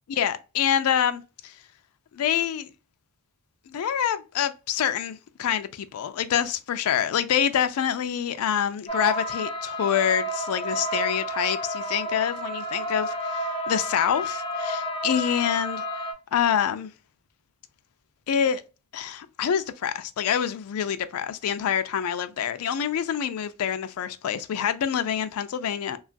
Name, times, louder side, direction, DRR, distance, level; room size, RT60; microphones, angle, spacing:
voice 1, 0.2-1.5 2.1-2.7 3.7-15.8 16.3-16.9 18.3-18.6 18.9-26.0, left 8 dB, 80° left, 0.4 m, -26 dB
sound 1, 8.9-16.1, equal, 25° left, 0.6 m, -31 dB
2.9 x 2.3 x 2.5 m
head